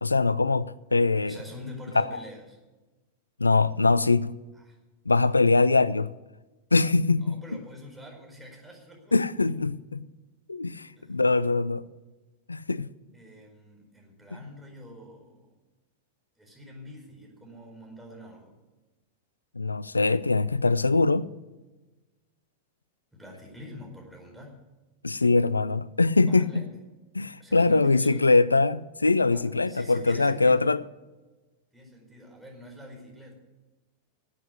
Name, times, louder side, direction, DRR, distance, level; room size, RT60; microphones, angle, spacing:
voice 1, 0.0-1.4 1.9-2.2 3.4-4.3 5.1-6.1 6.7-7.4 9.1-10.0 10.5-11.9 12.5-12.9 14.3-14.5 19.6-21.3 25.0-26.7 27.1-30.8, left 3 dB, 80° left, 0.4 m, -23 dB
voice 2, 1.2-2.6 4.6-4.8 7.2-9.1 11.0-11.2 13.1-15.5 16.4-18.5 23.1-24.6 26.2-26.7 27.4-28.4 29.2-30.6 31.7-33.3, left 1 dB, 5° right, 4.8 m, -46 dB
13.0 x 8.4 x 9.5 m
figure-of-eight pair, 90°, 0 cm